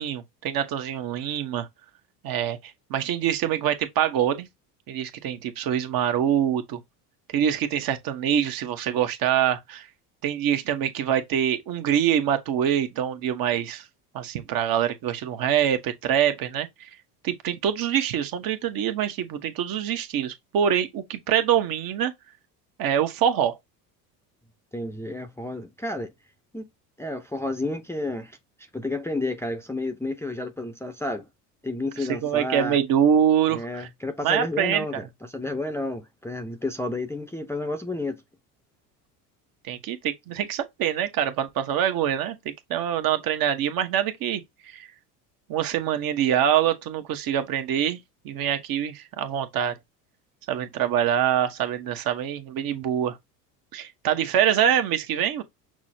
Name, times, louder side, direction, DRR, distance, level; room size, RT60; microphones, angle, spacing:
voice 1, 0.0-1.7 2.2-4.5 4.9-6.8 7.3-9.9 10.2-13.8 14.1-16.9 17.2-22.1 22.8-23.6 32.2-33.9 34.2-34.8 39.6-44.9 45.5-48.0 48.2-49.7 50.5-53.2 53.7-55.4, right 9 dB, 45° right, 1.0 m, -25 dB
voice 2, 24.7-26.1 26.5-26.7 27.0-28.4 28.7-31.3 31.6-32.8 33.5-38.2, left 2 dB, 5° left, 0.6 m, -31 dB
6.0 x 2.0 x 2.7 m
hypercardioid pair, 90°, 48 cm